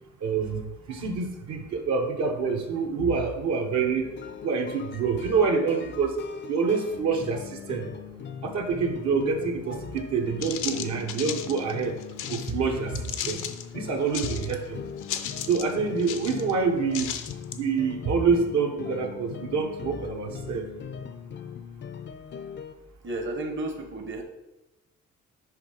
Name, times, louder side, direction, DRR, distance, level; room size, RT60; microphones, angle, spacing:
voice 1, 0.2-0.6 0.9-4.1 4.4-6.2 6.5-7.9 8.4-11.9 12.3-13.0 13.3-13.4 13.7-14.8 15.5-17.1 17.5-20.7, right 5 dB, 70° right, 2 dB, 1.1 m, -26 dB
sound 1, 4.0-22.7, left 7 dB, 40° left, 0.4 m, -40 dB
sound 2, 10.0-10.1 10.4-12.5 13.0-13.6 14.1-14.7 15.0-15.7 16.0-16.5 16.9-17.6, left 9 dB, 85° left, 0.6 m, -35 dB
voice 2, 23.0-24.2, right 2 dB, 40° right, 4 dB, 0.9 m, -32 dB
6.3 x 3.6 x 4.9 m, 0.97 s
cardioid pair, 90°, 30 cm